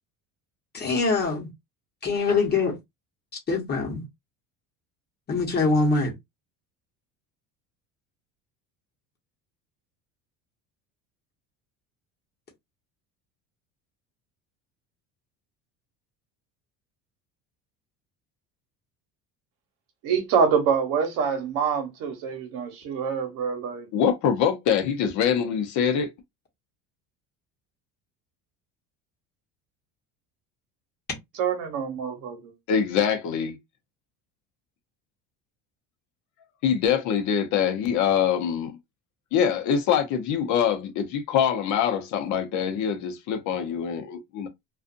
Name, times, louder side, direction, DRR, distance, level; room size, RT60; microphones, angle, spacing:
voice 1, 0.7-1.5 2.0-2.7 3.5-4.0 5.3-6.1, left 3 dB, 30° left, 1.1 m, -23 dB
voice 2, 20.0-23.9 31.3-32.5, right 6 dB, 60° right, 1.0 m, -26 dB
voice 3, 23.9-26.1 32.7-33.6 36.6-38.8 39.3-44.5, left 8 dB, 55° left, 0.7 m, -24 dB
2.5 x 2.4 x 2.5 m
cardioid pair, 145°, 35 cm